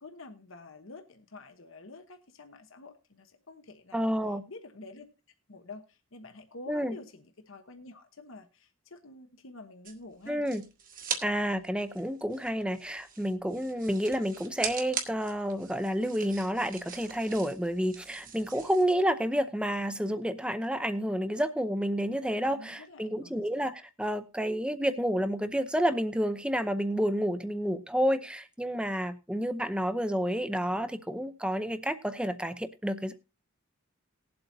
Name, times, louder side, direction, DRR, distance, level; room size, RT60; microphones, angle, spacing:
voice 1, 0.0-4.1 4.5-5.1 5.5-10.4 22.5-23.6, left 2 dB, 70° left, 1.1 m, -48 dB
voice 2, 3.9-4.4 6.7-7.0 10.3-10.6 11.2-33.1, equal, 5° right, 0.7 m, -30 dB
sound 1, 9.8-11.2 11.6-18.9, right 7 dB, 40° right, 1.6 m, -41 dB
19.5 x 7.8 x 2.7 m
head